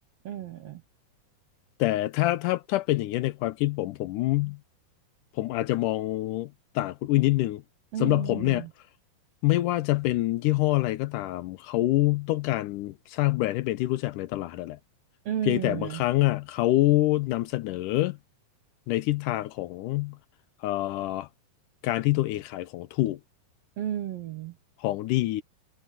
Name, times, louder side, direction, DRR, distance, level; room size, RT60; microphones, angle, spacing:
voice 1, 0.2-0.8 7.9-8.7 15.2-16.0 23.8-24.6, right 10 dB, 70° right, 1.5 m, -33 dB
voice 2, 1.8-4.6 5.4-7.6 8.0-8.6 9.4-14.8 15.5-18.2 18.9-20.2 20.6-21.3 21.8-23.2 24.8-25.4, left 17 dB, 80° left, 2.1 m, -26 dB
omnidirectional pair, 3.9 m